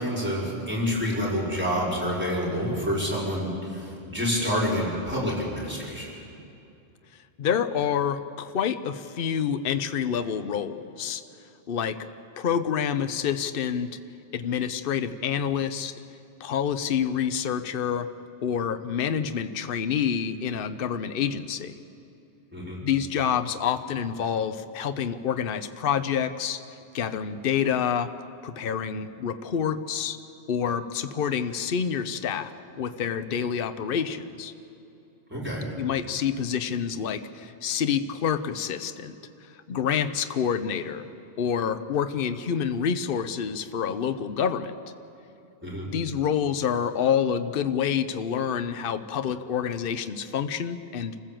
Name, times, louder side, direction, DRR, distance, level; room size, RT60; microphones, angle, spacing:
voice 1, 0.0-6.1 22.5-22.8 35.3-35.6 45.6-45.9, equal, 10° right, -6 dB, 5.0 m, -28 dB
voice 2, 7.4-11.2 11.7-12.0 12.4-13.9 14.3-15.9 16.4-18.1 18.4-21.8 22.8-26.6 26.9-28.1 28.4-30.2 30.5-32.5 32.8-34.5 35.8-39.1 39.4-41.1 41.4-44.8 45.9-51.1, left 8 dB, 60° left, 10 dB, 0.9 m, -27 dB
27.0 x 15.0 x 7.6 m, 2.7 s
omnidirectional pair, 1.1 m